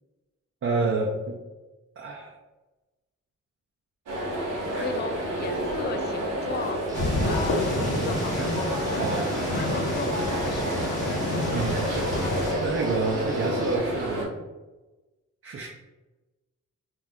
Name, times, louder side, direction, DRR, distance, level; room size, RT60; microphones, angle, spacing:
voice 1, 0.6-1.4 2.0-2.3 4.6-4.9 7.2-7.4 8.3-8.5 9.0-9.3 11.5-11.9 12.6-14.4 15.4-15.7, right 3 dB, 45° right, -1 dB, 0.5 m, -29 dB
sound 1, 4.1-14.2, right 1 dB, 80° right, 0.8 m, -29 dB
voice 2, 4.7-6.8 7.2-7.7 8.0-12.4, left 4 dB, 35° left, 7 dB, 0.4 m, -37 dB
sound 2, 6.9-12.5, left 2 dB, 90° left, 0.8 m, -29 dB
Guitar, 6.9-13.8, equal, 10° right, 0.8 m, -46 dB
2.5 x 2.4 x 3.4 m, 1.1 s
cardioid pair, 55°, 31 cm